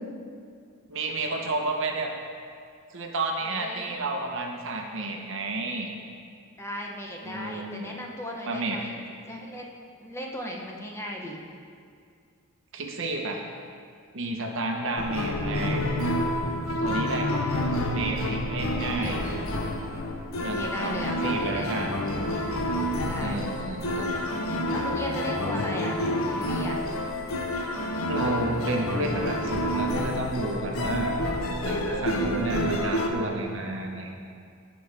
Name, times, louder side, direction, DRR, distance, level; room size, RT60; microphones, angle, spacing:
voice 1, 0.9-2.1 2.9-5.9 7.2-7.9 8.4-8.8 12.7-13.4 14.1-15.9 16.8-17.3 17.9-19.2 20.4-21.0 21.2-21.9 23.2-24.2 28.1-31.2 31.7-34.1, right 2 dB, 65° right, 1 dB, 1.0 m, -31 dB
voice 2, 3.4-3.9 6.6-9.7 10.0-11.4 18.8-19.3 20.4-21.7 23.0-23.4 24.0-24.2 24.7-26.8, equal, 15° left, 0 dB, 0.9 m, -37 dB
sound 1, 15.0-33.1, left 1 dB, 75° left, 0.8 m, -28 dB
16.0 x 5.4 x 3.5 m, 2.3 s
head